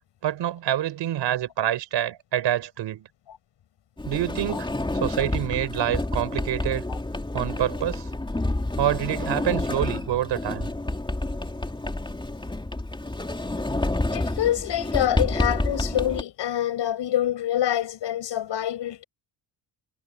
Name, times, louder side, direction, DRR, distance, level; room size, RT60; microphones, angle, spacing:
voice 1, 0.2-3.1 4.1-4.7 4.9-6.8 7.3-8.1 8.8-10.7, right 12 dB, 90° right, 5.0 m, -26 dB
Sliding door, 4.0-16.2, left 2 dB, 10° left, 3.3 m, -29 dB
voice 2, 14.1-19.0, left 11 dB, 80° left, 6.4 m, -26 dB
cardioid pair, 115°, 42 cm